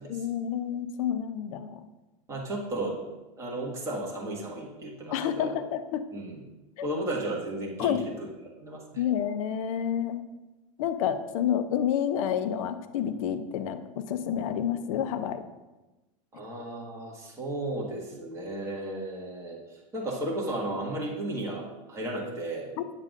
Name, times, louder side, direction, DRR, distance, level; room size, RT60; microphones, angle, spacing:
voice 1, 0.0-1.8 5.1-6.0 6.8-6.9 7.8-8.0 9.0-10.2 10.8-15.4, left 9 dB, 75° left, 10 dB, 0.6 m, -29 dB
voice 2, 2.3-3.0 3.4-5.6 6.1-6.4 6.8-8.1 8.6-9.0 16.3-22.7, right 1 dB, 15° right, -4 dB, 1.8 m, -34 dB
8.9 x 7.5 x 2.5 m, 1.1 s
supercardioid pair, 140°, 18 cm